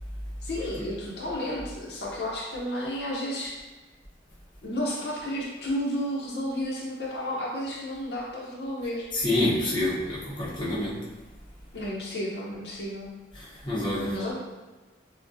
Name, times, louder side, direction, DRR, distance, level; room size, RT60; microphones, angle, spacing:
voice 1, 0.4-3.6 4.6-9.1 11.7-13.1 14.0-14.4, equal, 65° left, -4 dB, 0.7 m, -32 dB
voice 2, 9.1-11.0 13.3-14.1, left 1 dB, 25° left, -7 dB, 0.8 m, -27 dB
6.0 x 2.2 x 2.6 m, 1.2 s
head